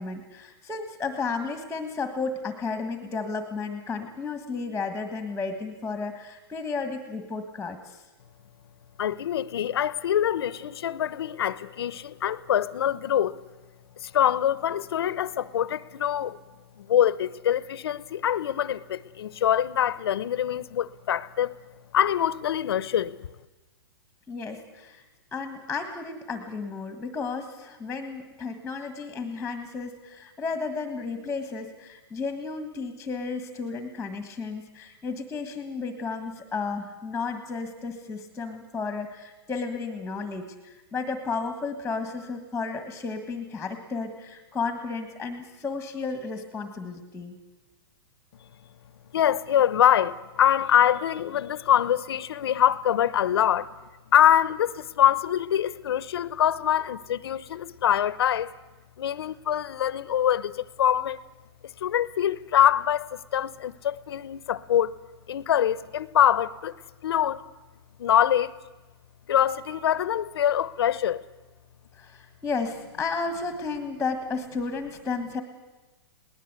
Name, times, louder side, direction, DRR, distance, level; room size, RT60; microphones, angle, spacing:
voice 1, 0.0-8.0 24.3-25.0 25.3-47.4 72.0-75.4, left 4 dB, 5° left, 1.5 m, -33 dB
voice 2, 9.0-13.4 14.0-16.4 16.8-21.5 21.9-23.3 49.1-53.7 54.1-58.5 59.0-61.2 61.8-65.0 65.3-66.7 67.0-67.4 68.0-68.5 69.3-71.2, left 10 dB, 75° left, 0.8 m, -24 dB
21.5 x 19.0 x 8.2 m
hypercardioid pair, 145°, 13 cm